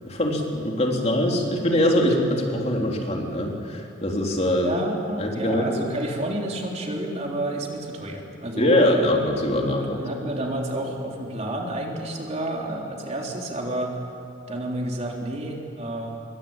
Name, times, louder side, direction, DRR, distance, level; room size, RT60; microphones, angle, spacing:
voice 1, 0.0-4.7 5.2-5.7 8.6-10.0, left 1 dB, 35° left, 0 dB, 3.4 m, -23 dB
voice 2, 4.5-9.1 9.8-14.0 14.5-16.2, right 1 dB, 35° right, 0 dB, 3.7 m, -30 dB
25.5 x 23.5 x 8.9 m, 2.8 s
head